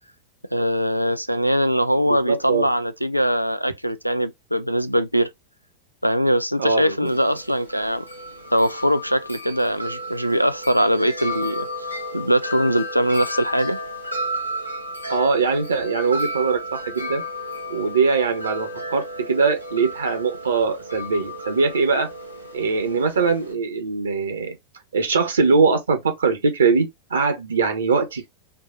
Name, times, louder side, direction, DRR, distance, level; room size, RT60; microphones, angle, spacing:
voice 1, 0.5-5.3 6.0-8.1 8.5-13.8, equal, 90° right, 0.4 m, -22 dB
voice 2, 2.1-2.7 6.6-7.1 15.1-17.2 17.7-22.1 22.5-24.6 24.9-28.3, right 4 dB, 70° right, 1.1 m, -21 dB
Wind chime, 7.1-23.5, equal, 90° left, 0.9 m, -33 dB
4.5 x 2.5 x 2.6 m
figure-of-eight pair, 90°, 0 cm